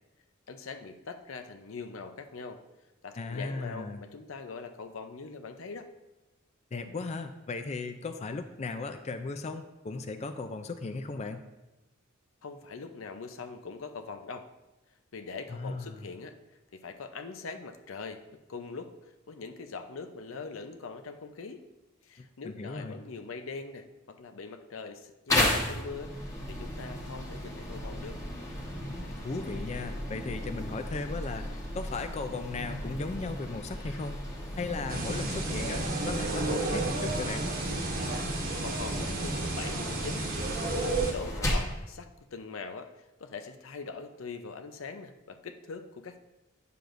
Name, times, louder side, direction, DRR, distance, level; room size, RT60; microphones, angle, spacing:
voice 1, 0.5-2.6 3.0-5.9 12.4-14.5 15.1-16.3 16.7-18.2 18.5-18.9 19.3-21.6 22.0-26.1 26.5-28.2 37.9-38.3 38.6-40.3 40.7-42.9 43.2-46.2, left 4 dB, 90° left, 7 dB, 0.6 m, -42 dB
voice 2, 3.2-4.0 6.7-11.4 15.5-16.0 22.4-23.0 28.9-29.0 29.2-34.2 34.6-37.5, left 3 dB, 35° left, 8 dB, 0.4 m, -36 dB
sound 1, 25.3-41.8, left 1 dB, 15° left, 1.2 m, -35 dB
sound 2, 34.9-41.1, right 2 dB, 50° right, 1.2 m, -32 dB
9.3 x 6.8 x 2.6 m, 1.0 s
head